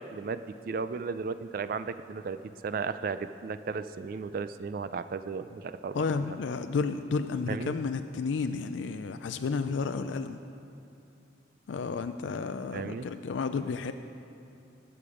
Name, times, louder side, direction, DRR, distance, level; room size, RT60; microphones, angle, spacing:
voice 1, 0.0-2.4 2.6-6.4 7.5-7.8 12.7-13.1, right 5 dB, 50° right, 12 dB, 0.3 m, -35 dB
voice 2, 5.9-10.4 11.7-13.9, left 4 dB, 90° left, 9 dB, 0.4 m, -31 dB
19.0 x 6.9 x 4.9 m, 2.7 s
head